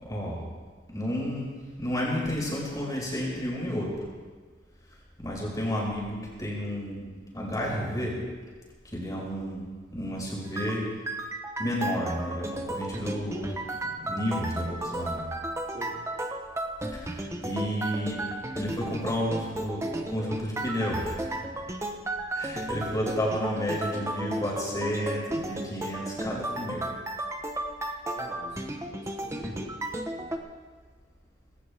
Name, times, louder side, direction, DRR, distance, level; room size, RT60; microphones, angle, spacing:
voice 1, 0.0-0.4 0.9-1.5 1.8-3.9 5.2-8.2 8.9-10.8 11.6-13.5 13.8-15.3 16.9-18.3 18.5-21.3 22.3-26.9, equal, 20° left, -4 dB, 5.6 m, -31 dB
sound 1, 10.6-30.4, right 1 dB, 15° right, 1.1 m, -34 dB
voice 2, 28.1-30.4, equal, 40° right, -4 dB, 3.0 m, -45 dB
20.5 x 17.0 x 3.6 m, 1.4 s
head